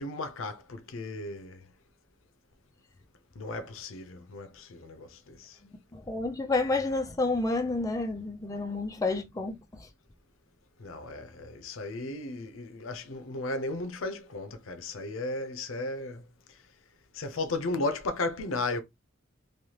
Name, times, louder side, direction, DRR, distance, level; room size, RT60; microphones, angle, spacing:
voice 1, 0.0-1.7 3.3-5.6 10.8-16.2 17.1-18.8, left 2 dB, 80° left, 0.6 m, -35 dB
voice 2, 5.9-9.6, left 3 dB, 15° left, 0.5 m, -29 dB
3.3 x 2.3 x 2.9 m
head